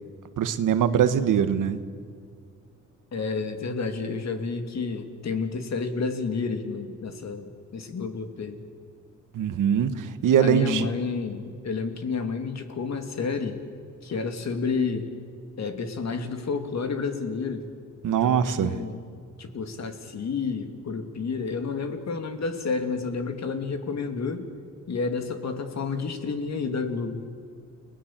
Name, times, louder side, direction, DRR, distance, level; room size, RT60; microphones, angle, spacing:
voice 1, 0.4-1.8 9.3-10.9 18.0-18.8, right 8 dB, 85° right, 11 dB, 1.4 m, -22 dB
voice 2, 3.1-8.6 10.4-13.6 14.0-15.1 15.6-17.7 18.2-19.0 19.4-24.5 24.9-27.2, left 4 dB, 60° left, 6 dB, 2.8 m, -30 dB
30.0 x 19.0 x 7.5 m, 2.2 s
cardioid pair, 90°, 31 cm